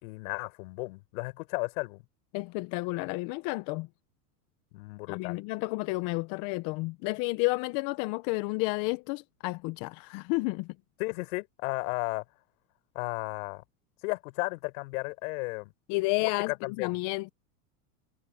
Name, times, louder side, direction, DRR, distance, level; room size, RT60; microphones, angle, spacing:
voice 1, 0.0-2.0 4.7-5.4 11.0-12.2 13.0-13.6 14.0-15.7 16.2-17.0, left 24 dB, 65° left, 5.4 m, -34 dB
voice 2, 2.3-3.9 5.1-10.7 15.9-17.3, left 24 dB, 45° left, 0.8 m, -31 dB
supercardioid pair, 135°, 46 cm